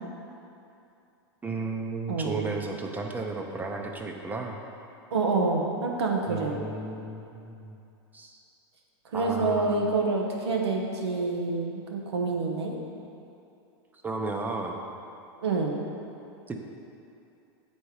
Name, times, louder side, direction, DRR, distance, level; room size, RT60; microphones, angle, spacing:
voice 1, 1.4-4.6 6.3-7.8 8.1-8.4 9.1-9.9 14.0-14.8 16.5-16.6, right 3 dB, 10° right, 2 dB, 0.7 m, -34 dB
voice 2, 2.1-2.4 5.1-6.6 9.1-12.7 15.4-15.8, right 3 dB, 85° right, 1 dB, 1.1 m, -27 dB
8.4 x 4.3 x 4.8 m, 2.7 s
hypercardioid pair, 120°, 14 cm